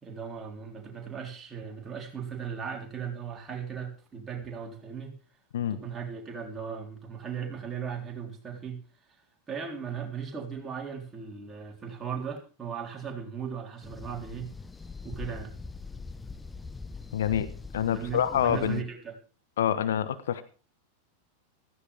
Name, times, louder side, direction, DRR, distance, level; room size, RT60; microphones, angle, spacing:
voice 1, 0.0-5.2 5.7-8.8 9.5-14.5 15.0-15.5 17.8-19.2, right 7 dB, 20° right, 3.9 m, -37 dB
sound 1, 13.8-18.8, left 4 dB, 10° left, 0.7 m, -42 dB
voice 2, 17.1-18.8 19.6-20.4, left 9 dB, 60° left, 1.3 m, -27 dB
16.5 x 14.5 x 3.6 m
figure-of-eight pair, 90°, 0 cm